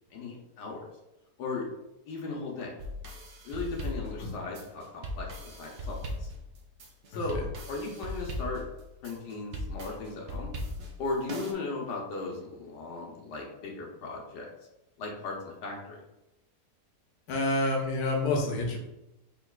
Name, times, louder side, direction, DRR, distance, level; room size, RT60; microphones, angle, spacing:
voice 1, 0.1-0.9 1.4-1.6 2.1-2.7 3.4-6.3 7.1-7.4 7.7-8.6 9.0-10.5 11.0-14.5 15.0-16.0, left 3 dB, 90° left, -1 dB, 1.4 m, -37 dB
sound 1, 2.8-11.5, left 1 dB, 60° right, 0.8 m, -38 dB
voice 2, 7.1-7.5 17.3-18.8, left 2 dB, 70° left, 0 dB, 1.3 m, -28 dB
4.5 x 3.7 x 2.3 m, 0.95 s
omnidirectional pair, 1.7 m